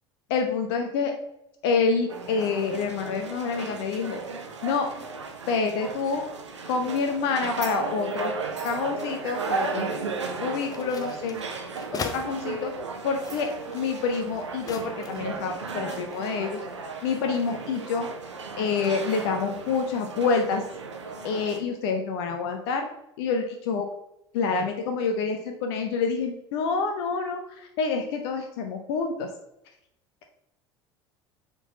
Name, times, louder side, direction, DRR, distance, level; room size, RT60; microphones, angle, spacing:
voice 1, 0.3-1.1 1.6-4.2 4.6-4.9 5.5-6.2 6.7-8.3 8.6-9.8 10.4-11.4 12.0-12.7 13.0-16.6 17.0-18.1 18.6-20.6 21.2-22.9 23.2-23.9 24.3-29.3, left 5 dB, 60° left, 4 dB, 0.7 m, -27 dB
sound 1, 2.1-21.6, right 4 dB, 80° right, 0.7 m, -35 dB
sound 2, 10.4-12.2 13.0-15.3 15.7-16.3, left 5 dB, 25° left, 0.7 m, -40 dB
4.9 x 3.9 x 5.0 m, 0.84 s
figure-of-eight pair, 70°, 15 cm